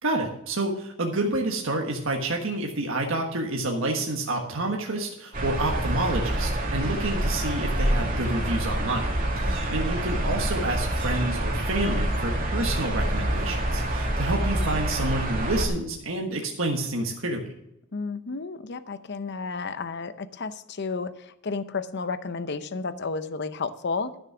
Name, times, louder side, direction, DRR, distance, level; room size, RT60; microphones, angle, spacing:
voice 1, 0.0-17.5, right 2 dB, 65° right, 1 dB, 1.5 m, -29 dB
sound 1, 5.3-15.7, right 1 dB, 45° right, 2.2 m, -27 dB
voice 2, 9.5-9.8 17.9-24.2, left 4 dB, 55° left, 12 dB, 0.7 m, -32 dB
13.0 x 6.5 x 5.9 m, 0.81 s
head